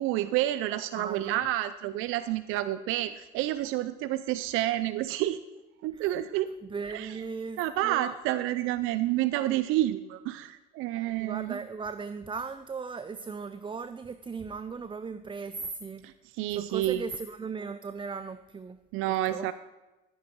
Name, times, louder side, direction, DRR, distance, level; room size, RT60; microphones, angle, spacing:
voice 1, 0.0-5.4 5.8-6.5 6.9-7.2 7.6-11.6 16.0-17.0 18.9-19.5, right 14 dB, 75° right, 14 dB, 0.5 m, -29 dB
voice 2, 0.9-1.5 5.9-6.1 6.6-8.1 11.2-16.1 16.5-18.8 19.3-19.5, right 5 dB, 25° right, 12 dB, 0.5 m, -38 dB
14.0 x 9.7 x 4.6 m, 1.1 s
supercardioid pair, 70°, 21 cm